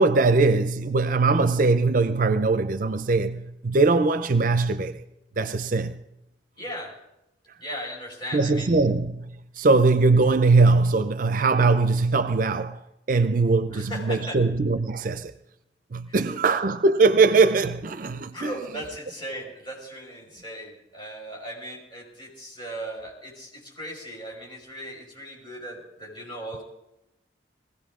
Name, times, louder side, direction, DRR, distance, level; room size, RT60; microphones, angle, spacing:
voice 1, 0.0-5.0 5.4-6.0 8.3-12.8 13.1-15.3 15.9-18.5, right 3 dB, 50° right, 0.5 m, -21 dB
voice 2, 6.6-7.0 7.6-8.7 13.7-14.4 16.1-16.2 18.3-26.6, equal, 25° left, 5.3 m, -37 dB
20.0 x 16.5 x 3.7 m
head